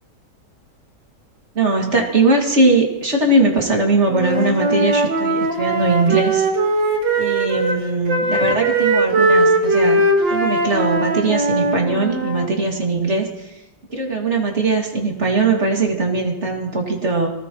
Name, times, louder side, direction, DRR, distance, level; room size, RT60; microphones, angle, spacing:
voice 1, 1.5-6.5 7.2-10.0 10.3-13.5 13.9-17.3, right 3 dB, 40° right, 0 dB, 2.6 m, -20 dB
Wind instrument woodwind instrument, 4.1-7.8 8.1-12.5, right 2 dB, 90° right, 2.6 m, -19 dB
24.0 x 18.5 x 3.1 m, 0.96 s
omnidirectional pair, 2.0 m